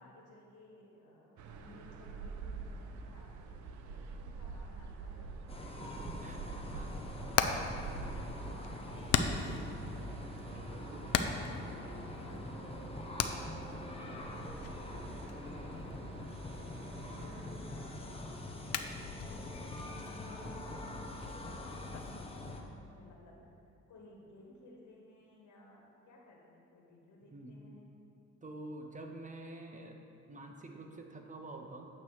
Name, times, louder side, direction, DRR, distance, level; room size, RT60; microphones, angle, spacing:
voice 1, 0.0-5.3 5.8-6.6 7.1-10.4 11.0-16.0 17.2-18.8 19.3-22.0 22.5-23.4 23.9-27.9, left 2 dB, 75° left, -2 dB, 1.5 m, -58 dB
sound 1, 1.4-17.9, right 4 dB, 75° right, 0.6 m, -47 dB
sound 2, 5.5-22.6, left 1 dB, 20° left, 0.8 m, -44 dB
voice 2, 5.7-6.4 6.7-8.3 10.9-11.6 22.3-22.7 27.2-27.6 28.4-29.9 30.3-31.9, right 2 dB, 25° right, 3 dB, 0.8 m, -49 dB
Hammer, 6.8-22.1, left 7 dB, 55° left, 0.5 m, -40 dB
8.7 x 3.2 x 6.5 m, 2.6 s
cardioid pair, 90°, 30 cm